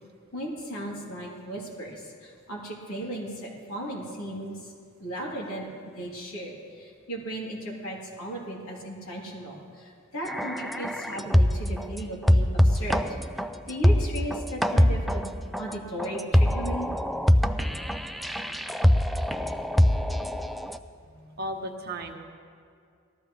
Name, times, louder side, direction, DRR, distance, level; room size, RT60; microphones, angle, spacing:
voice 1, 0.3-4.7 5.0-5.7 5.9-13.2 13.7-15.2 15.6-16.9 21.0-21.4, right 1 dB, 85° left, -4 dB, 3.4 m, -36 dB
sound 1, 10.3-11.8 12.2-20.8, equal, ahead, 0.3 m, -23 dB
voice 2, 21.4-22.1, right 1 dB, 50° right, 2 dB, 1.2 m, -34 dB
19.5 x 14.0 x 3.4 m, 2.2 s
head